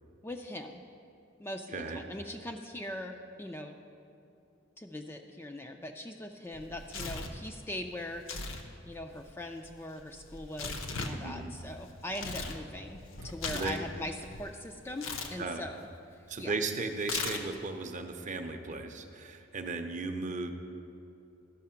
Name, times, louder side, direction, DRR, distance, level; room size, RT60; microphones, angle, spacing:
voice 1, 0.2-0.8 1.4-3.8 4.8-8.5 8.9-16.5, left 1 dB, 10° left, 4 dB, 0.3 m, -41 dB
Tearing, 6.5-7.4 8.2-8.6 8.9-12.6 12.9-14.4 15.0-15.3 17.0-17.7, left 4 dB, 75° left, 0.8 m, -38 dB
voice 2, 11.1-11.5 13.5-13.8 15.4-15.6 16.3-20.5, right 3 dB, 35° right, 6 dB, 0.6 m, -36 dB
13.0 x 5.7 x 5.7 m, 2.6 s
head